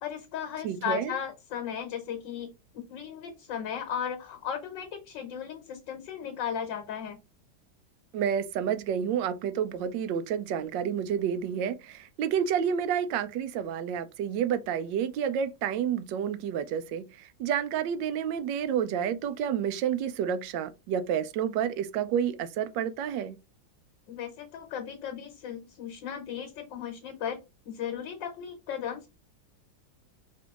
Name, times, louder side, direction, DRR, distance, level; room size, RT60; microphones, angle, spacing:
voice 1, 0.0-7.2 24.1-29.1, left 8 dB, 85° left, 1.6 m, -36 dB
voice 2, 0.6-1.1 8.1-23.4, right 8 dB, 85° right, 1.3 m, -29 dB
5.0 x 2.8 x 3.5 m
omnidirectional pair, 1.9 m